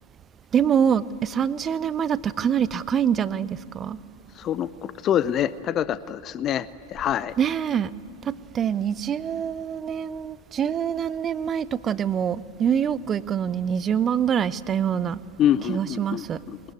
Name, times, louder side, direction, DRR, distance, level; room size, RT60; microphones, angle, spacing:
voice 1, 0.5-4.0 7.4-7.9 8.2-15.2 15.7-16.4, right 8 dB, 25° right, 18 dB, 0.6 m, -25 dB
voice 2, 4.4-7.3 15.4-16.6, left 10 dB, 30° left, 18 dB, 0.5 m, -25 dB
21.5 x 20.5 x 9.7 m, 2.2 s
figure-of-eight pair, 90°, 0 cm